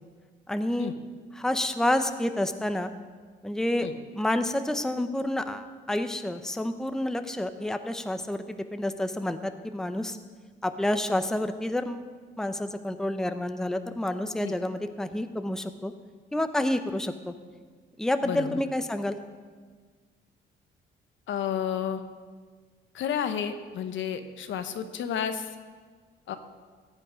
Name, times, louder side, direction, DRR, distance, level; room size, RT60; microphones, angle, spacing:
voice 1, 0.5-0.9 1.4-2.9 3.4-3.9 4.1-10.2 10.6-12.1 12.4-15.9 16.3-17.3 18.0-19.2, left 1 dB, 5° left, 9 dB, 0.7 m, -29 dB
voice 2, 18.2-18.6 21.3-22.0 22.9-25.5 26.3-26.4, left 8 dB, 75° left, 9 dB, 0.9 m, -31 dB
14.5 x 8.5 x 5.1 m, 1.5 s
cardioid pair, 90°, 20 cm